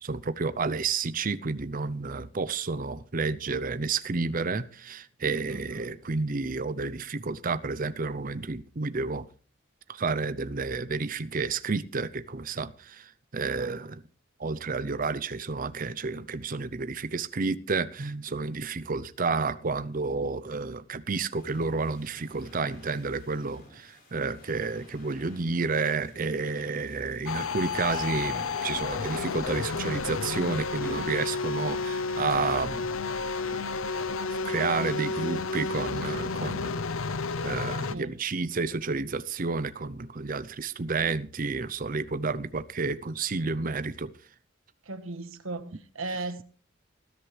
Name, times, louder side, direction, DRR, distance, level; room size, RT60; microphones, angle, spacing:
voice 1, 0.0-9.3 9.9-14.0 14.4-32.9 33.5-33.6 34.4-36.8 37.4-44.1, right 4 dB, 40° right, 0.6 m, -30 dB
voice 2, 5.5-5.9 34.6-35.0 37.9-38.2 44.8-46.4, right 2 dB, 80° right, 1.5 m, -37 dB
sound 1, 21.4-29.4, left 1 dB, 45° left, 5.5 m, -54 dB
sound 2, 27.3-38.0, left 4 dB, 80° left, 0.7 m, -31 dB
19.0 x 11.0 x 3.3 m
head